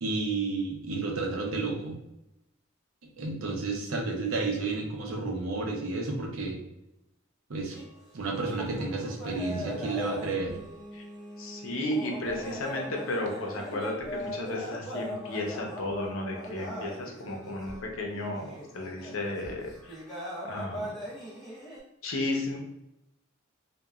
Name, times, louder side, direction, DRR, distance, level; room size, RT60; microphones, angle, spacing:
voice 1, 0.0-2.0 3.2-6.6 7.5-7.8 8.1-10.6, right 3 dB, 90° right, 1 dB, 0.6 m, -31 dB
sound 1, 7.7-21.8, equal, ahead, 1.0 m, -40 dB
voice 2, 11.4-20.0 20.4-20.9 22.0-22.6, left 1 dB, 80° left, 0 dB, 0.6 m, -33 dB
2.9 x 2.2 x 2.3 m, 0.89 s
head